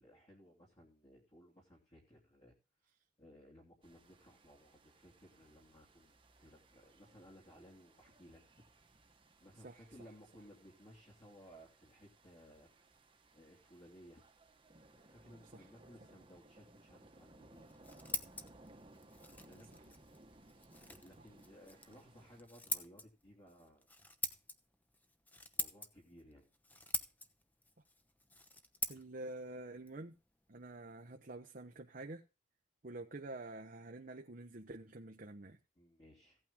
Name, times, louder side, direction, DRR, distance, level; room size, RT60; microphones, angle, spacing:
voice 1, 0.0-2.5 3.2-8.4 8.7-8.8 9.4-13.0 13.3-14.2 14.9-17.7 19.2-19.9 20.8-23.9 25.5-26.5 28.9-29.0 35.7-36.4, equal, 35° left, -3 dB, 3.1 m, -60 dB
sound 1, 3.8-22.4, right 2 dB, 30° right, 1.4 m, -63 dB
Scissors, 17.5-31.1, left 2 dB, 10° left, 1.0 m, -46 dB
voice 2, 28.9-30.1 30.5-32.2 32.8-35.6, right 2 dB, 50° right, 4 dB, 1.0 m, -48 dB
16.5 x 8.8 x 3.6 m, 0.30 s
head